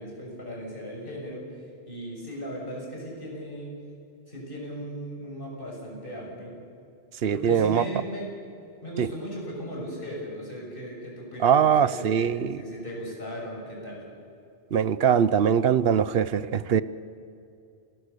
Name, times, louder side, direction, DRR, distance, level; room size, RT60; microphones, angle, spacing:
voice 1, 0.0-1.4 1.9-3.7 4.3-6.5 7.3-8.3 8.8-14.0, equal, 50° left, -2 dB, 6.5 m, -37 dB
voice 2, 7.2-7.9 9.0-9.1 11.4-12.6 14.7-16.8, right 8 dB, 65° right, 16 dB, 0.9 m, -22 dB
28.0 x 19.5 x 6.8 m, 2.5 s
omnidirectional pair, 1.2 m